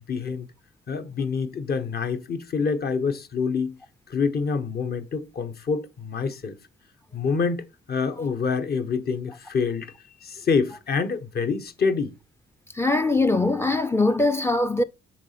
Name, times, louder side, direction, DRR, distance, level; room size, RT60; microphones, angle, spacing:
voice 1, 0.1-0.4 0.9-3.8 4.1-6.6 7.1-9.9 10.2-12.1, left 5 dB, 50° left, 1.3 m, -26 dB
voice 2, 12.7-14.8, left 2 dB, 10° left, 0.5 m, -22 dB
7.2 x 4.3 x 5.8 m
cardioid pair, 90°, 20 cm